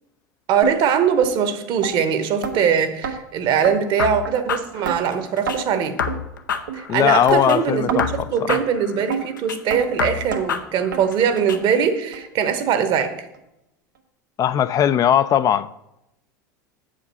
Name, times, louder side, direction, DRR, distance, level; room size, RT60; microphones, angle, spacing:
voice 1, 0.5-6.0 6.7-13.2, right 7 dB, 50° right, 1.1 m, -21 dB
sound 1, 0.6-0.8 1.2-1.3 1.8-1.9 2.4-2.6 3.0-3.2 3.6-3.7 4.2-4.3 4.8-5.0 5.5-5.6 6.1-6.2 6.7-6.8 7.3-7.4 7.9-8.1 8.5-8.6 9.1-9.2 9.7-9.8 10.3-10.4 10.9-11.0 11.5-11.6 12.1-12.2 12.7-12.8 13.3-13.4, right 7 dB, 90° right, 1.0 m, -27 dB
sound 2, 4.0-5.6 6.0-7.6 8.0-9.6 10.0-11.6, left 7 dB, 90° left, 0.6 m, -28 dB
voice 2, 6.9-8.6 14.4-15.7, left 10 dB, 35° left, 0.3 m, -19 dB
7.6 x 5.0 x 6.8 m
hypercardioid pair, 85°, 10 cm